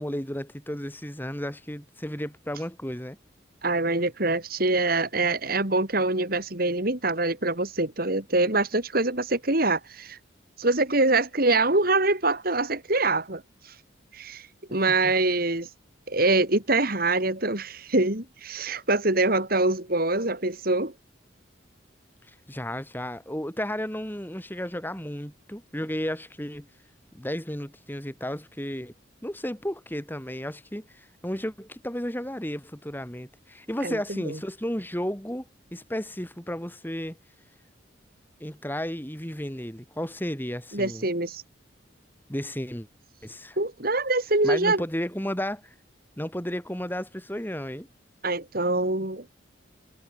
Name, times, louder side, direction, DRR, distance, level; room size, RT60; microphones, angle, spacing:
voice 1, 0.0-3.2 14.7-15.1 22.3-26.7 27.1-28.9 29.2-35.5 35.7-37.2 38.4-41.1 42.3-42.9 43.2-43.6 44.4-45.7 46.2-47.9, equal, 10° left, 5.2 m, -33 dB
voice 2, 3.6-10.2 10.6-13.4 14.1-15.7 16.1-20.9 33.8-34.4 40.7-41.4 43.6-44.8 48.2-49.3, right 2 dB, 50° right, 3.7 m, -24 dB
head